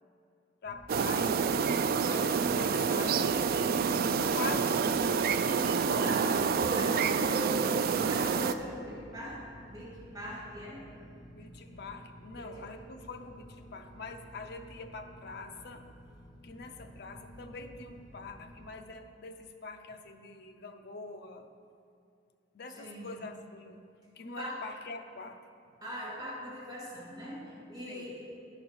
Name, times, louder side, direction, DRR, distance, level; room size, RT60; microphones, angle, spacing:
voice 1, 0.6-1.4 2.1-3.4 4.3-5.3 5.8-6.3 11.3-15.9 16.4-21.5 22.5-23.8 24.1-25.4 27.9-28.1, left 4 dB, 60° left, 5 dB, 0.6 m, -44 dB
sound 1, 0.6-18.7, equal, 20° left, 1.0 m, -52 dB
sound 2, 0.9-8.5, right 5 dB, 50° right, 0.3 m, -28 dB
voice 2, 6.0-6.3 6.7-7.7 8.0-10.9 11.6-11.7 12.4-12.6 22.7-23.2 24.2-24.5 25.8-28.2, equal, 20° right, -8 dB, 2.2 m, -42 dB
10.5 x 5.0 x 6.2 m, 2.4 s
head